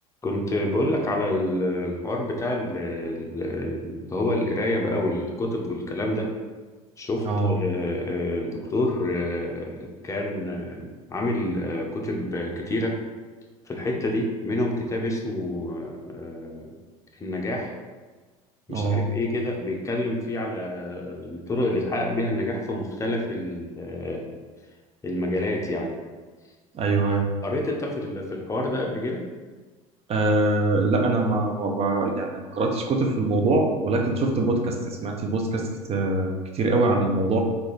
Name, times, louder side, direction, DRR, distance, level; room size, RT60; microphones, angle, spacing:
voice 1, 0.2-6.3 7.0-13.0 13.6-16.8 17.1-17.7 18.7-24.3 25.0-25.9 27.4-29.2, left 1 dB, 15° left, -1 dB, 0.7 m, -28 dB
voice 2, 7.2-7.5 18.7-19.0 26.7-27.3 30.1-37.4, right 2 dB, 35° right, 2 dB, 0.6 m, -23 dB
3.7 x 2.6 x 3.2 m, 1.4 s
hypercardioid pair, 75°, 18 cm